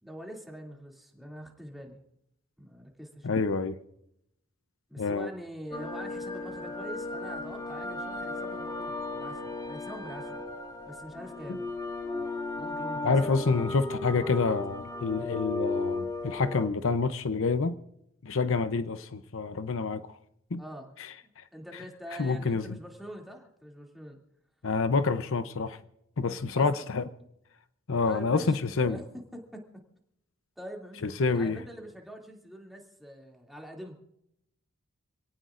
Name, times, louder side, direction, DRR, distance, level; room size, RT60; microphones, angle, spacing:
voice 1, 0.0-2.0 2.6-3.5 4.9-10.4 10.9-11.7 12.5-13.6 14.1-14.4 20.6-20.9 21.5-24.2 26.5-26.9 28.1-28.6 28.8-29.6 30.6-33.9, equal, ahead, 2.7 m, -44 dB
voice 2, 3.2-3.8 5.0-5.3 11.5-11.6 13.0-17.8 18.2-20.2 20.5-20.6 21.0-21.4 22.2-22.8 24.6-25.8 26.2-27.0 27.9-29.0 31.0-31.6, left 4 dB, 65° left, 0.7 m, -28 dB
sound 1, 5.7-16.7, left 2 dB, 20° left, 1.8 m, -35 dB
27.5 x 18.0 x 2.5 m
head